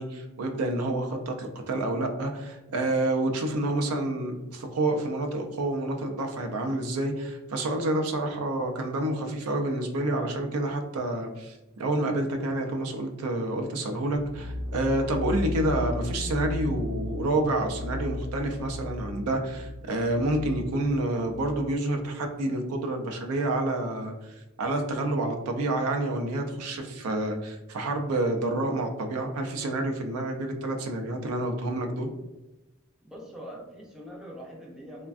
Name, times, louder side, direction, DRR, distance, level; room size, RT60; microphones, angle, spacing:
voice 1, 0.0-32.1, right 1 dB, 90° right, 4 dB, 0.5 m, -28 dB
sound 1, 14.2-21.8, left 1 dB, 75° left, 0.6 m, -35 dB
voice 2, 33.0-35.1, equal, 5° right, -2 dB, 0.4 m, -43 dB
3.4 x 2.2 x 2.4 m, 0.99 s
head